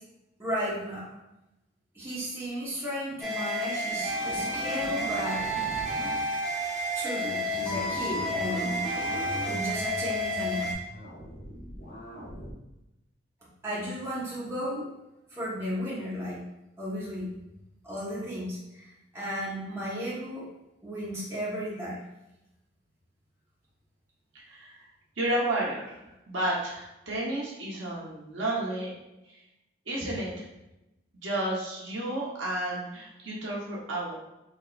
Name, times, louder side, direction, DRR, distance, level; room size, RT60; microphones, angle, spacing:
voice 1, 0.4-1.1 1.9-5.4 6.9-8.8 9.1-10.7 13.6-14.8 15.3-16.4 16.8-17.3 17.8-18.8 19.1-20.4 20.8-22.0, equal, 15° right, -8 dB, 1.1 m, -34 dB
sound 1, 3.2-10.7, equal, ahead, 0.8 m, -31 dB
sound 2, 4.0-6.5 7.4-9.6 10.7-12.5, equal, 50° left, 1.2 m, -41 dB
voice 2, 24.3-24.7 25.2-26.0 26.3-28.9 29.2-29.4 29.9-30.4 31.1-34.2, right 1 dB, 80° right, -4 dB, 1.1 m, -31 dB
4.5 x 2.9 x 2.5 m, 0.90 s
head